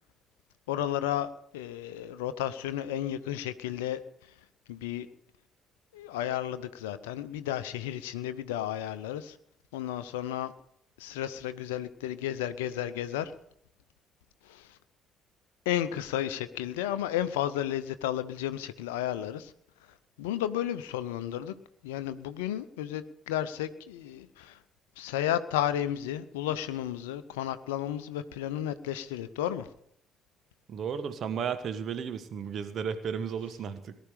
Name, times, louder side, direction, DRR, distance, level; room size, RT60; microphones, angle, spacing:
voice 1, 0.7-4.3 4.7-5.1 5.9-9.4 9.7-10.5 11.0-13.3 14.4-14.8 15.7-19.5 20.2-21.5 21.8-24.6 25.0-29.7, left 11 dB, 70° left, 12 dB, 0.6 m, -33 dB
voice 2, 30.7-34.0, right 7 dB, 50° right, 11 dB, 1.3 m, -34 dB
19.0 x 11.0 x 5.0 m, 0.70 s
figure-of-eight pair, 45°, 0 cm